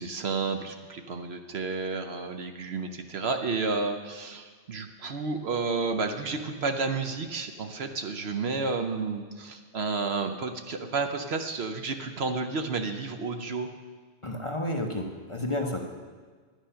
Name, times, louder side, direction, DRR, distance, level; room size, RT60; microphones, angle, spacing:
voice 1, 0.0-13.7, right 4 dB, 60° right, 6 dB, 0.9 m, -31 dB
voice 2, 14.2-15.8, left 1 dB, 25° left, 1 dB, 0.9 m, -31 dB
11.0 x 9.1 x 5.7 m, 1.5 s
omnidirectional pair, 1.3 m